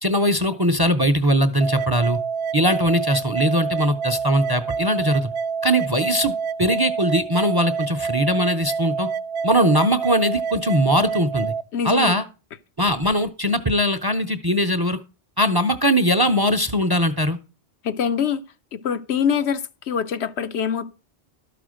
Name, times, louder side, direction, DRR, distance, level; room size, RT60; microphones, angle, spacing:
voice 1, 0.0-2.2 2.5-5.3 5.6-9.1 9.4-11.5 11.8-12.2 12.8-15.0 15.4-17.4, equal, 30° right, 0.5 m, -20 dB
sound 1, 1.6-11.6, right 6 dB, 70° right, 0.9 m, -27 dB
voice 2, 11.7-12.1 17.8-18.4 18.7-20.9, left 7 dB, 80° left, 1.0 m, -24 dB
12.5 x 5.0 x 6.3 m
omnidirectional pair, 1.1 m